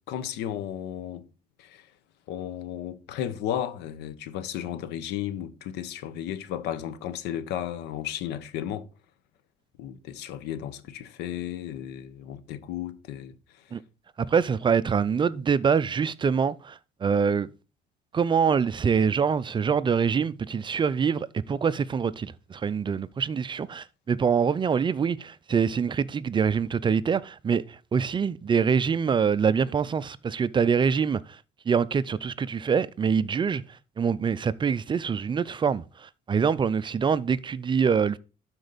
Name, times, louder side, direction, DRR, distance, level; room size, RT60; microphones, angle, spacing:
voice 1, 0.1-1.3 1.6-1.9 2.3-8.9 9.8-13.6, left 10 dB, 85° left, 0.9 m, -34 dB
voice 2, 14.3-17.5 18.1-31.4 31.7-33.6 34.0-38.2, right 6 dB, 30° right, 0.4 m, -25 dB
12.0 x 4.5 x 4.0 m
cardioid pair, 110°, 17 cm